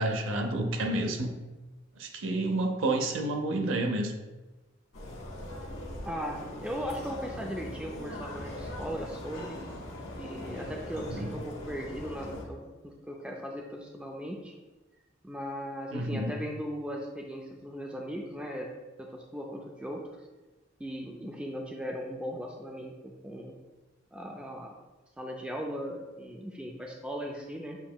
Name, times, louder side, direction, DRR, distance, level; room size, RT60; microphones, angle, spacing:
voice 1, 0.0-1.3 2.0-4.1 11.1-11.3 15.9-16.3, right 2 dB, 90° right, 5 dB, 0.5 m, -29 dB
sound 1, 4.9-12.4, left 1 dB, 75° left, 1.2 m, -41 dB
voice 2, 6.0-9.6 10.1-14.5 15.2-18.7 19.0-20.0 20.8-23.0 23.2-23.5 24.1-24.7 25.2-27.8, equal, 5° right, 0 dB, 0.3 m, -38 dB
7.2 x 2.8 x 2.2 m, 1.2 s
head